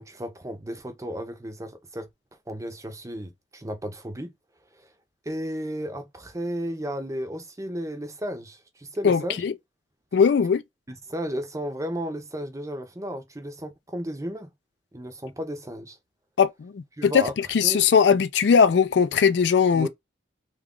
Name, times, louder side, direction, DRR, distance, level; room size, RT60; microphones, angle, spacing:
voice 1, 0.0-2.1 2.5-4.3 4.7-4.9 5.3-9.4 10.9-14.5 14.9-16.0 17.0-17.3 17.6-17.8 19.7-19.9, equal, 15° right, 0.6 m, -33 dB
voice 2, 9.0-9.5 10.1-10.6 16.4-19.9, left 6 dB, 65° left, 0.3 m, -20 dB
3.0 x 2.4 x 3.6 m
head